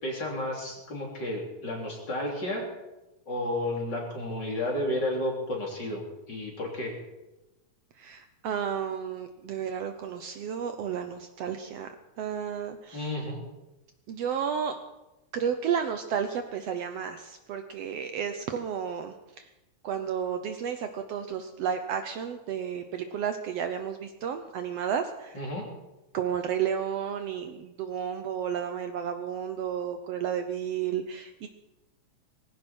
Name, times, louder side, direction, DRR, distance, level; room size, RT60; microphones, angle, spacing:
voice 1, 0.0-2.6 3.3-6.9 12.9-13.4 25.3-25.6, left 1 dB, 35° left, -1 dB, 3.7 m, -32 dB
voice 2, 8.0-11.9 12.2-13.1 14.1-14.8 15.3-19.5 19.8-25.4 26.1-31.5, right 8 dB, 70° right, 7 dB, 1.7 m, -32 dB
20.0 x 16.5 x 4.4 m, 1.0 s
omnidirectional pair, 3.3 m